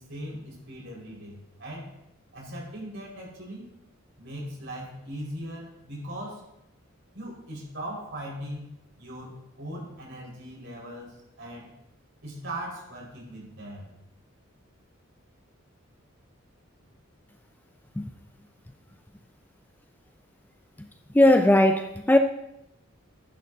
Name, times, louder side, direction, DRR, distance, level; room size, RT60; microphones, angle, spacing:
voice 1, 0.0-1.9 2.3-3.7 4.2-6.4 7.1-8.7 9.0-11.7 12.2-13.9, right 1 dB, 60° right, 5.0 m, -39 dB
voice 2, 21.1-22.2, left 1 dB, 10° left, 0.4 m, -18 dB
14.5 x 11.0 x 2.8 m
head